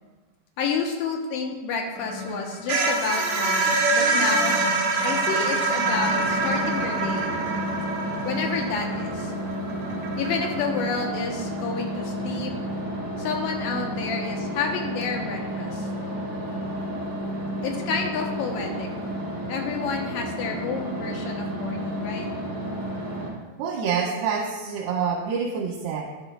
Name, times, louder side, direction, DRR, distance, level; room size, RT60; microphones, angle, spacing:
voice 1, 0.6-4.6 5.0-7.3 8.2-9.3 10.2-12.5 13.2-15.9 17.6-18.9 19.5-22.3, left 5 dB, 70° left, 2 dB, 2.3 m, -30 dB
sound 1, 2.0-10.8, right 3 dB, 65° right, 1.9 m, -25 dB
sound 2, 5.8-23.3, equal, 25° right, 2.2 m, -31 dB
voice 2, 23.6-26.0, right 6 dB, 85° right, -4 dB, 3.1 m, -27 dB
11.0 x 10.5 x 2.3 m, 1.2 s
omnidirectional pair, 4.6 m